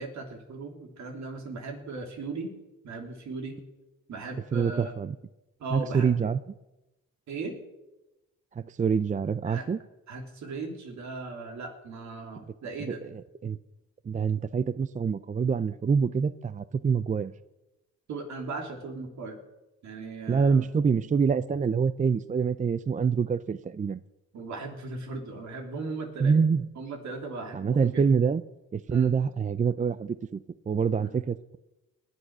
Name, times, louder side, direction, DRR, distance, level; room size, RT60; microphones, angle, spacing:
voice 1, 0.0-2.5 2.8-3.6 4.1-4.9 5.6-6.1 7.3-7.5 9.4-9.7 10.1-13.0 18.1-19.4 19.8-20.7 24.3-26.3 26.7-28.1 28.9-29.1 31.0-31.1, right 3 dB, 65° right, 3 dB, 3.3 m, -37 dB
voice 2, 4.5-5.2 5.7-6.4 8.6-9.8 13.1-13.6 14.1-17.3 20.3-24.0 26.2-26.6 27.5-28.4 28.7-30.4 30.7-31.6, right 6 dB, 25° right, 16 dB, 0.5 m, -26 dB
20.0 x 8.1 x 6.1 m, 1.0 s
cardioid pair, 75°, 30 cm